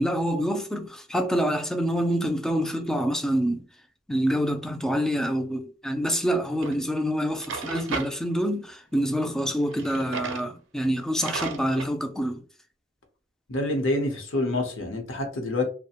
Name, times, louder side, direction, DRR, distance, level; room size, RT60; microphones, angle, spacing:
voice 1, 0.0-3.6 4.1-12.4, equal, 5° left, 0.3 m, -26 dB
Drawer open or close, 6.6-6.7 7.2-8.1 9.7-10.5 10.8-10.9 11.2-11.9, right 5 dB, 70° right, 0.5 m, -34 dB
voice 2, 13.5-15.7, left 2 dB, 75° left, 0.8 m, -27 dB
2.4 x 2.1 x 2.8 m
head